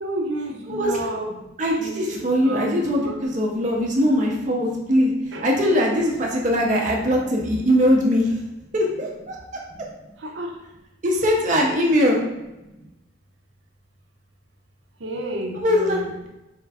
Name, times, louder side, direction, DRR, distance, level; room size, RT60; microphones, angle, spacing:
voice 1, 0.0-1.3 1.8-2.2 2.4-3.2 3.6-3.8 5.3-5.4 10.2-10.5 15.0-16.1, right 1 dB, 90° right, 2 dB, 0.6 m, -30 dB
voice 2, 0.7-1.1 1.6-8.4 8.7-9.4 11.0-12.2 15.5-16.0, equal, 40° right, -1 dB, 0.6 m, -21 dB
4.4 x 2.4 x 3.3 m, 0.97 s
head